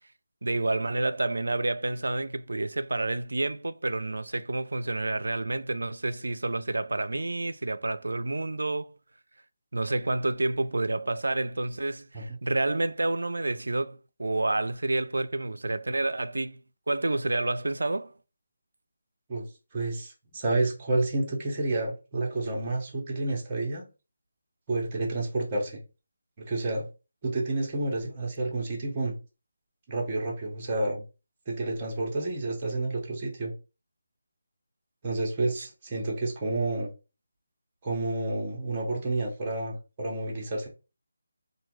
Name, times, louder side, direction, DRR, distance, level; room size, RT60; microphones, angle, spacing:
voice 1, 0.4-9.0 9.7-16.6 16.9-18.1 35.6-35.7, right 2 dB, 85° right, 0.3 m, -29 dB
voice 2, 19.7-23.9 24.7-25.8 26.4-26.9 27.2-29.1 29.9-31.0 31.5-33.5 35.0-36.9 37.8-40.7, right 2 dB, 25° right, 0.9 m, -30 dB
3.1 x 2.2 x 3.1 m
figure-of-eight pair, 165°, 0 cm